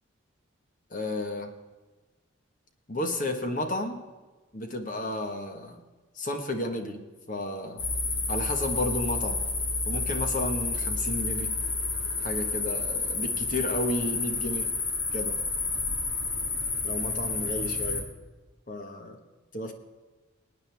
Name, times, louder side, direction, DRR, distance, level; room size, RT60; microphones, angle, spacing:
voice 1, 0.9-1.5 2.9-4.0 4.5-5.8 6.2-7.8 8.3-9.4 9.8-11.5 12.2-14.7 15.1-15.4 16.8-18.0 18.7-19.2 19.5-19.7, left 1 dB, 40° left, 5 dB, 1.4 m, -32 dB
sound 1, 7.8-18.0, left 3 dB, 75° left, 2.7 m, -30 dB
22.0 x 9.3 x 3.5 m, 1.2 s
head